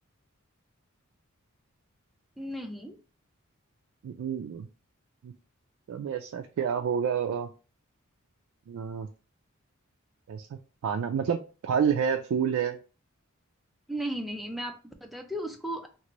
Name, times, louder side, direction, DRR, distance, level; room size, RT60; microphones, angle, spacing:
voice 1, 2.4-3.0 13.9-15.9, right 1 dB, ahead, 3 dB, 0.4 m, -35 dB
voice 2, 4.0-4.7 5.2-5.3 5.9-7.5 8.7-9.1 10.3-12.8, right 7 dB, 70° right, 5 dB, 0.3 m, -29 dB
3.0 x 2.5 x 2.9 m, 0.35 s
head